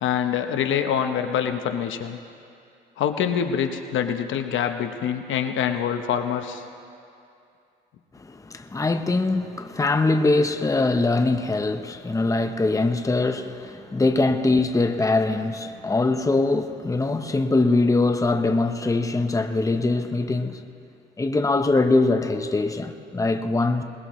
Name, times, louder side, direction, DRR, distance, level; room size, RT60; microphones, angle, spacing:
voice 1, 0.0-2.2 3.0-6.6, left 8 dB, 75° left, 1.0 m, -25 dB
voice 2, 8.1-20.7 21.2-23.8, left 2 dB, 15° left, 0.8 m, -22 dB
21.0 x 20.0 x 3.2 m
cardioid pair, 90°, 20 cm